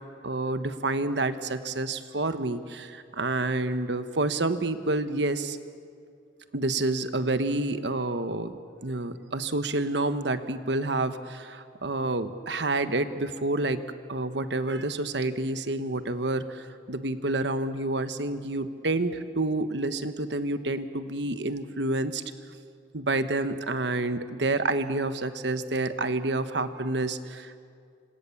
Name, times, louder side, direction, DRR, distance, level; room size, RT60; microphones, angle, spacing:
voice 1, 0.2-5.6 6.5-13.8 14.1-22.2 22.9-27.6, right 2 dB, 70° right, 10 dB, 1.3 m, -29 dB
27.0 x 26.0 x 7.3 m, 2.3 s
head